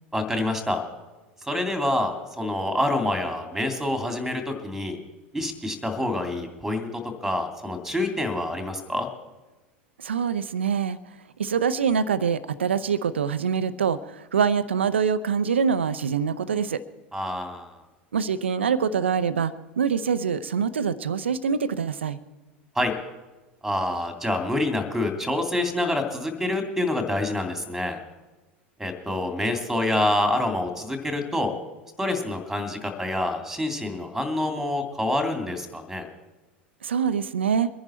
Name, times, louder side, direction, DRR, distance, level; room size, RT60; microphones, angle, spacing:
voice 1, 0.1-0.8 1.4-5.0 5.3-9.1 17.1-17.8 22.7-22.9 23.6-28.0 28.8-31.5 32.0-36.1, left 1 dB, 5° right, 6 dB, 2.6 m, -27 dB
voice 2, 10.0-11.0 11.4-16.8 18.1-22.2 36.8-37.7, right 6 dB, 75° right, 13 dB, 0.7 m, -25 dB
23.5 x 10.5 x 4.4 m, 1.1 s
figure-of-eight pair, 80°, 6 cm